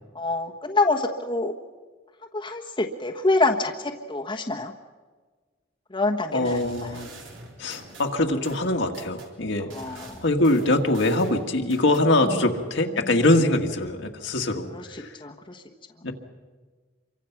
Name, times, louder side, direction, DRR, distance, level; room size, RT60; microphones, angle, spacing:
voice 1, 0.1-1.5 2.3-4.7 5.9-6.9 9.7-10.2 12.2-12.5 13.0-13.1 14.7-15.6, left 2 dB, 25° left, 1 dB, 1.3 m, -26 dB
voice 2, 6.3-7.2 7.6-15.2 16.0-16.1, left 1 dB, 65° left, 3 dB, 1.8 m, -23 dB
sound 1, 6.5-9.3 9.7-12.1, right 2 dB, 80° right, 3.7 m, -45 dB
27.0 x 24.0 x 5.9 m, 1.4 s
head